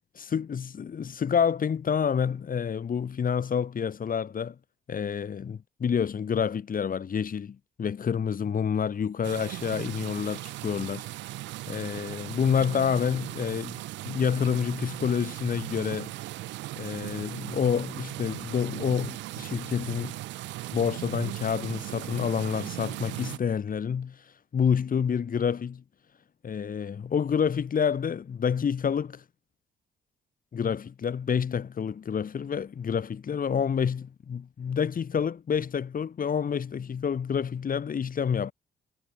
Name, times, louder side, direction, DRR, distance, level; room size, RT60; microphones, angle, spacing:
voice 1, 0.3-4.6 4.9-11.0 11.7-16.1 16.8-20.2 20.7-24.2 24.5-25.8 26.4-29.2 30.5-38.5, left 7 dB, 50° left, 2.1 m, -28 dB
sound 1, 9.2-23.4, right 17 dB, 80° right, 1.0 m, -38 dB
supercardioid pair, 55°, 19 cm